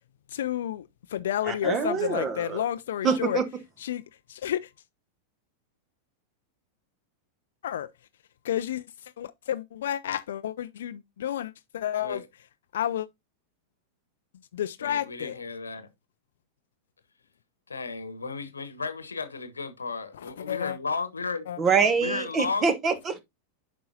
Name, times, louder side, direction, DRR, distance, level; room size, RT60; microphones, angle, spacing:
voice 1, 0.3-3.4 3.8-4.0 4.3-4.7 7.6-7.9 8.4-12.2 12.7-13.1 14.5-15.4 20.1-20.8 21.5-21.6, left 11 dB, 60° left, 0.4 m, -31 dB
voice 2, 1.5-2.6 3.0-3.4 21.6-23.2, right 5 dB, 25° right, 1.1 m, -25 dB
voice 3, 14.8-15.9 17.7-21.5 22.0-22.7, left 4 dB, 75° left, 1.1 m, -34 dB
9.1 x 5.5 x 2.7 m
figure-of-eight pair, 90°, 0 cm